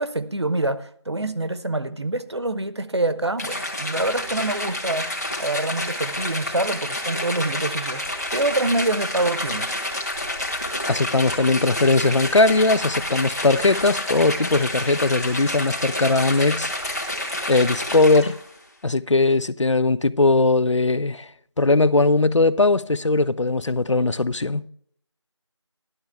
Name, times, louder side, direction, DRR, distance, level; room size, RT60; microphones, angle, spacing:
voice 1, 0.0-5.1 5.4-9.8, right 2 dB, 60° right, 0.9 m, -26 dB
sound 1, 3.4-18.5, left 1 dB, 35° left, 1.9 m, -29 dB
voice 2, 10.9-16.7 17.0-17.1 17.5-18.3 18.8-21.3 21.6-24.7, left 3 dB, 75° left, 0.6 m, -19 dB
13.0 x 12.0 x 3.5 m
figure-of-eight pair, 175°, 16 cm